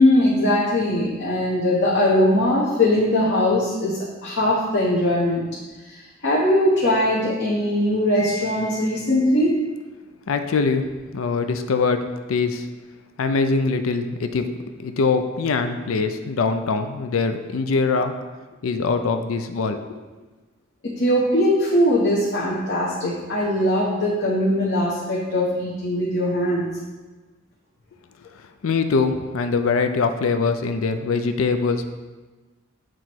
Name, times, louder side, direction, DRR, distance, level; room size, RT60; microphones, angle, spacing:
voice 1, 0.0-5.5 5.8-9.5 20.8-26.7, left 1 dB, 60° left, -5 dB, 1.0 m, -20 dB
voice 2, 10.3-12.0 12.3-12.7 13.2-14.5 14.8-18.2 18.6-20.0 28.6-31.9, left 4 dB, 90° left, 8 dB, 0.4 m, -23 dB
7.8 x 3.0 x 4.4 m, 1.2 s
head